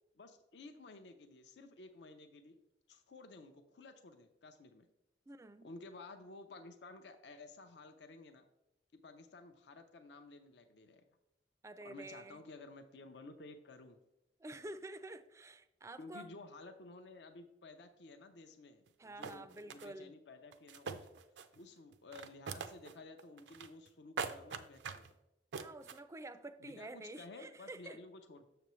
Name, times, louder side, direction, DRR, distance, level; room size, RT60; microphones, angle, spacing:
voice 1, 0.1-2.6 2.9-4.8 5.6-8.4 8.9-11.0 11.8-14.0 16.0-21.1 21.5-25.1 26.6-28.5, left 3 dB, 75° left, 7 dB, 0.6 m, -54 dB
voice 2, 5.3-5.7 11.6-12.4 14.4-16.3 19.0-20.1 25.6-28.0, right 2 dB, 15° right, 12 dB, 0.3 m, -49 dB
sound 1, 18.9-19.0 19.2-19.9 20.5-21.6 21.9-22.9 23.2-23.9 24.2-25.1 25.5-26.0, right 5 dB, 85° right, 0.5 m, -43 dB
6.8 x 6.8 x 3.1 m, 0.87 s
head